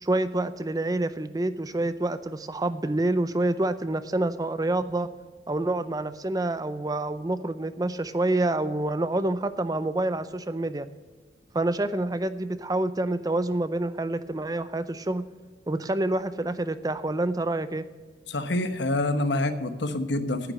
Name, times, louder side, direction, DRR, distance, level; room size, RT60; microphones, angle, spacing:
voice 1, 0.0-5.1 5.5-10.9 11.5-15.2 15.7-17.8, right 2 dB, 20° right, 13 dB, 0.5 m, -27 dB
voice 2, 18.3-20.4, left 2 dB, 70° left, 10 dB, 1.1 m, -26 dB
9.9 x 9.3 x 7.6 m, 1.4 s
head